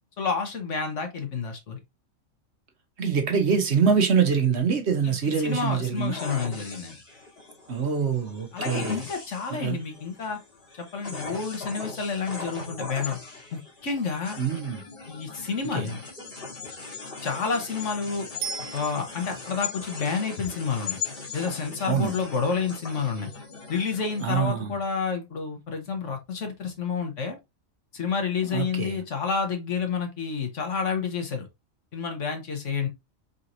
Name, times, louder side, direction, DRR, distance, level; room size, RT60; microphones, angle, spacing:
voice 1, 0.2-1.8 5.0-7.0 8.5-10.4 10.8-13.2 13.5-14.4 15.1-16.0 17.2-18.3 18.7-21.0 21.3-23.3 23.7-27.4 27.9-31.5 31.9-32.9, left 5 dB, 65° left, 1.5 m, -29 dB
voice 2, 3.0-6.2 7.7-9.0 9.5-9.8 14.4-14.8 15.7-15.9 21.8-22.1 24.2-24.8 28.5-29.0, right 6 dB, 55° right, 1.1 m, -25 dB
sound 1, 5.0-24.3, left 4 dB, 45° left, 1.7 m, -39 dB
Bicycle bell, 18.4-19.5 28.6-28.7, right 7 dB, 85° right, 1.1 m, -36 dB
4.5 x 4.0 x 2.6 m
omnidirectional pair, 1.4 m